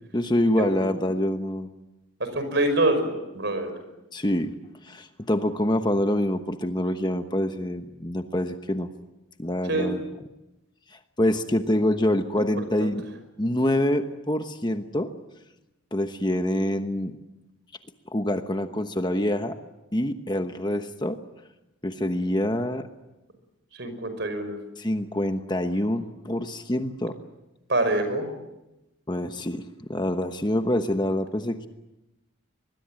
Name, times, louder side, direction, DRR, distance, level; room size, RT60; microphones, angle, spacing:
voice 1, 0.0-1.7 4.1-4.5 4.8-8.9 9.4-10.0 10.9-13.0 13.4-15.1 15.9-17.2 18.1-19.6 19.9-21.2 21.8-22.9 24.8-27.2 29.1-31.7, left 1 dB, 20° left, 7 dB, 1.1 m, -26 dB
voice 2, 0.6-0.9 2.2-3.7 9.7-9.9 12.6-12.9 23.8-24.5 27.7-28.3, right 2 dB, 55° right, 8 dB, 5.6 m, -25 dB
25.0 x 21.5 x 9.0 m, 0.97 s
head